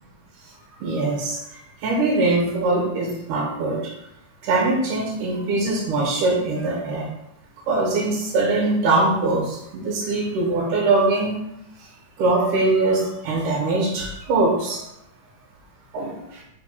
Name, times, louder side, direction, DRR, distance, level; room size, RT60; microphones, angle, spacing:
voice 1, 0.8-1.4 1.8-3.9 4.4-7.1 7.7-11.4 12.2-14.9 15.9-16.2, right 2 dB, 80° right, -1 dB, 2.3 m, -22 dB
5.1 x 2.2 x 4.2 m, 0.84 s
omnidirectional pair, 3.7 m